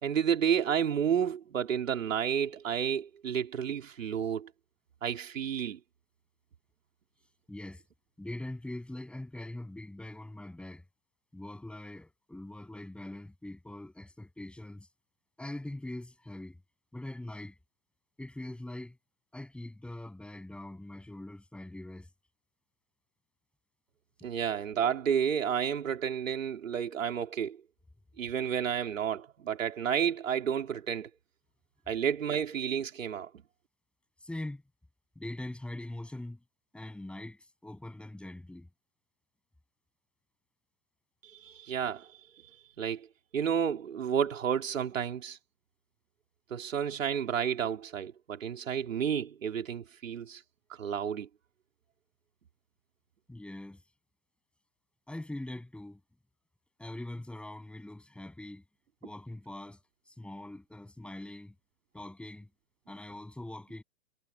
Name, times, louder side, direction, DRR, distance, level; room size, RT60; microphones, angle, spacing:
voice 1, 0.0-4.5 5.0-5.8 24.2-27.6 28.2-31.1 31.9-33.3 41.2-42.2 42.8-43.1 43.3-45.4 46.5-50.4 50.7-51.3, right 8 dB, 75° right, 3.7 m, -31 dB
voice 2, 7.5-7.8 8.2-10.8 11.3-14.9 15.4-16.6 16.9-17.6 18.2-19.0 19.3-22.1 24.2-24.3 34.2-34.6 35.1-36.4 36.7-38.7 53.3-53.8 55.1-56.0 56.8-58.6 59.0-59.8 60.1-61.5 61.9-62.5 62.9-63.8, left 1 dB, 5° left, 7.7 m, -42 dB
hypercardioid pair, 140°, 39 cm